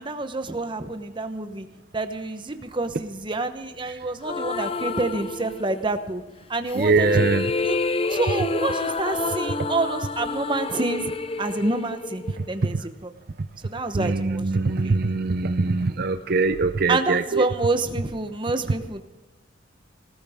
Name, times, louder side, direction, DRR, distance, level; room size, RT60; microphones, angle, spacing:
voice 1, 0.0-1.7 1.9-6.2 6.5-7.3 7.6-7.8 8.1-11.1 11.4-12.2 12.5-13.1 13.6-15.0 16.9-19.0, right 2 dB, 25° right, 8 dB, 1.0 m, -28 dB
sound 1, 4.2-6.0 6.7-12.8, left 3 dB, 30° left, 0.5 m, -28 dB
voice 2, 6.8-7.5 13.9-17.4, right 3 dB, 50° right, 9 dB, 0.6 m, -22 dB
19.0 x 14.5 x 3.6 m, 1.1 s
head